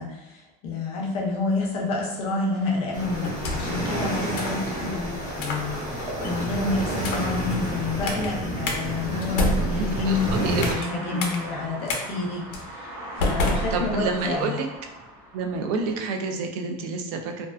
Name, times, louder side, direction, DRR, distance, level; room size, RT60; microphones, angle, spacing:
voice 1, 0.0-12.4 12.7-12.9 13.2-14.5, left 3 dB, 30° left, -2 dB, 0.4 m, -29 dB
sound 1, 1.3-16.1, right 1 dB, 40° right, 1.0 m, -43 dB
sound 2, 2.9-10.7, right 1 dB, 15° right, 0.8 m, -30 dB
sound 3, 3.2-3.8 4.4-4.6 5.3-5.7 6.2-6.5 7.0-7.4 8.1-8.3 8.7-8.8 9.2-10.9 11.2-11.4 11.9-12.0 12.5-12.7 13.2-14.3, left 1 dB, 85° left, 0.5 m, -28 dB
voice 2, 10.1-11.2 13.7-14.7 15.3-17.5, right 4 dB, 65° right, 4 dB, 0.4 m, -29 dB
2.4 x 2.2 x 2.4 m, 0.89 s
cardioid pair, 180°, 21 cm